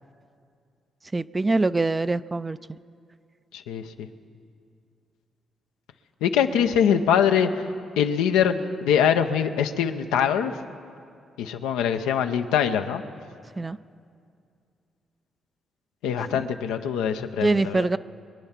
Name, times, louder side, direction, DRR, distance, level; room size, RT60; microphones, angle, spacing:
voice 1, 1.1-2.6 13.6-13.8 16.2-16.4 17.4-18.0, right 3 dB, 25° right, 15 dB, 0.4 m, -24 dB
voice 2, 3.5-4.1 6.2-7.6 8.0-8.5 8.8-10.6 11.4-13.0 16.0-17.9, left 8 dB, 90° left, 7 dB, 0.6 m, -23 dB
23.5 x 8.9 x 5.8 m, 2.4 s
supercardioid pair, 55°, 0 cm